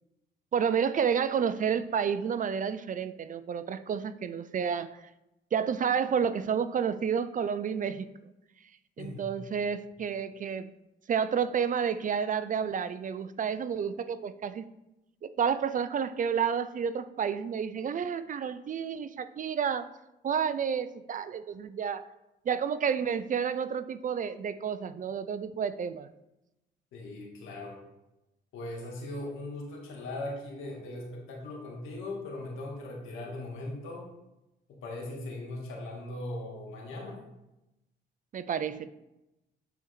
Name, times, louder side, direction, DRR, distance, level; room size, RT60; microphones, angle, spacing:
voice 1, 0.5-5.0 5.5-8.1 9.0-10.7 11.1-14.7 15.2-19.9 20.2-22.0 22.5-26.1 38.3-38.9, right 7 dB, 40° right, 13 dB, 0.4 m, -30 dB
voice 2, 9.0-9.3 26.9-27.8 28.5-34.1 34.7-37.2, left 2 dB, 85° left, -1 dB, 2.2 m, -39 dB
9.1 x 4.5 x 3.9 m, 0.93 s
cardioid pair, 90°, 20 cm